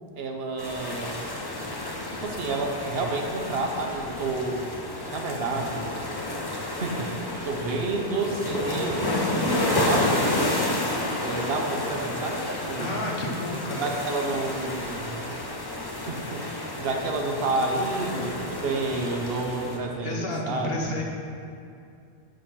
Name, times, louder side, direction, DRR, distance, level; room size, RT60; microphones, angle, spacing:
voice 1, 0.2-1.2 2.2-4.7 5.1-5.9 6.7-10.9 11.2-12.9 13.8-15.3 16.1-20.9, right 3 dB, 65° right, 2 dB, 0.9 m, -30 dB
sound 1, 0.6-19.8, left 1 dB, 25° left, 0.7 m, -30 dB
voice 2, 12.8-13.8 20.0-21.0, left 1 dB, 60° left, -1 dB, 1.2 m, -31 dB
6.6 x 5.2 x 5.5 m, 2.4 s
omnidirectional pair, 1.1 m